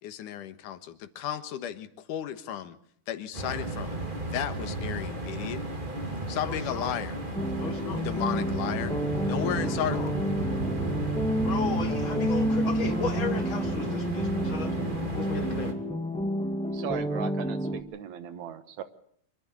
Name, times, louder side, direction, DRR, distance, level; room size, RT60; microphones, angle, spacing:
voice 1, 0.0-2.8 3.1-4.0 4.3-5.6 6.3-7.2 8.0-8.9 9.3-10.1, left 10 dB, 85° left, 11 dB, 2.8 m, -34 dB
sound 1, 3.3-15.7, right 2 dB, 15° right, 2.2 m, -34 dB
voice 2, 6.4-6.9 7.6-8.0 9.6-10.1 11.4-14.7 15.2-15.7, left 5 dB, 45° left, 9 dB, 2.1 m, -35 dB
sound 2, 7.3-17.8, equal, 5° left, 0.6 m, -30 dB
voice 3, 16.7-18.8, right 9 dB, 70° right, 11 dB, 2.4 m, -38 dB
25.0 x 13.5 x 8.4 m, 0.66 s
omnidirectional pair, 3.6 m